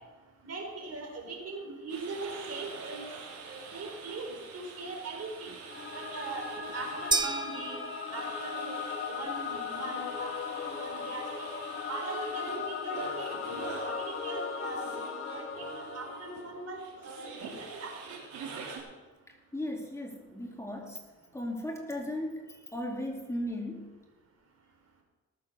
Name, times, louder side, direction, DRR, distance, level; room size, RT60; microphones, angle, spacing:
voice 1, 0.4-3.0 3.5-5.5 5.9-6.5 6.7-7.8 8.1-11.5 11.9-15.0 15.3-17.9, right 3 dB, 55° right, 3 dB, 4.0 m, -40 dB
Scrubbing through Swedish Radio, 1.9-18.8, right 5 dB, 80° right, 4.0 m, -46 dB
Singing / Musical instrument, 5.7-17.0, left 6 dB, 40° left, 1.6 m, -38 dB
sound 1, 7.1-8.6, right 3 dB, 15° right, 0.5 m, -32 dB
voice 2, 19.5-21.0 21.3-23.9, left 1 dB, 10° left, 0 dB, 2.7 m, -36 dB
18.5 x 7.7 x 6.4 m, 1.2 s
cardioid pair, 90°, 30 cm